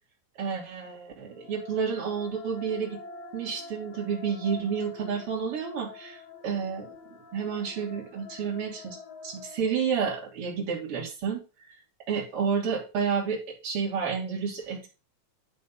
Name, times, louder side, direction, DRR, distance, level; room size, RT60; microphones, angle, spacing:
voice 1, 0.4-3.0 3.3-6.9 7.3-9.0 9.2-11.4 12.1-14.9, right 6 dB, 45° right, -3 dB, 3.5 m, -30 dB
sound 1, 1.2-10.4, left 5 dB, 60° left, 2.3 m, -47 dB
11.0 x 4.2 x 5.6 m, 0.33 s
omnidirectional pair, 3.8 m